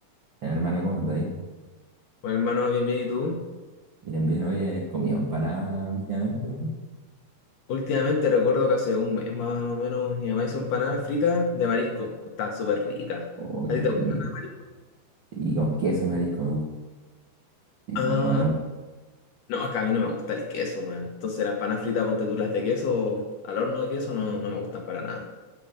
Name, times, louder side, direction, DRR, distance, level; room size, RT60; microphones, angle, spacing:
voice 1, 0.4-1.3 4.0-6.7 13.4-14.2 15.3-16.7 17.9-18.5, right 2 dB, 50° right, -5 dB, 1.4 m, -27 dB
voice 2, 2.2-3.4 7.7-13.3 13.7-13.9 14.2-14.3 18.0-18.4 19.5-25.3, left 4 dB, 70° left, 2 dB, 2.3 m, -26 dB
11.0 x 8.5 x 5.2 m, 1.2 s
omnidirectional pair, 4.5 m